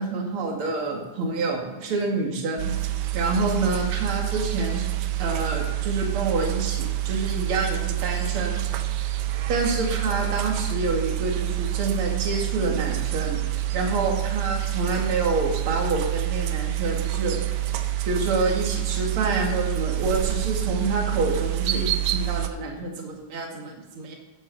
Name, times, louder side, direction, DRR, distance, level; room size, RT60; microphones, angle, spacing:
voice 1, 0.0-4.8 5.2-8.6 9.5-13.4 13.7-17.4 18.1-24.1, right 3 dB, 50° right, 1 dB, 2.6 m, -27 dB
sound 1, 2.6-22.5, right 14 dB, 80° right, 2.2 m, -27 dB
15.0 x 11.5 x 4.0 m, 1.1 s
omnidirectional pair, 3.4 m